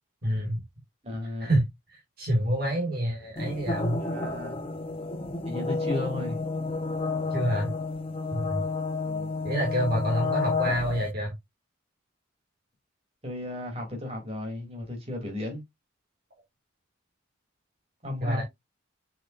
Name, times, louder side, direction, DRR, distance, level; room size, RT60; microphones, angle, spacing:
voice 1, 0.2-0.6 1.4-4.1 7.3-7.7 8.3-8.6 9.4-11.3 18.2-18.4, right 1 dB, 50° right, 2.0 m, -27 dB
voice 2, 1.0-1.5 4.0-4.6 5.4-6.4 9.0-9.3 13.2-15.6 18.0-18.4, left 1 dB, 30° right, 2.9 m, -34 dB
Gate Screech, 3.4-11.1, left 3 dB, 25° left, 0.7 m, -31 dB
6.9 x 5.7 x 2.5 m
head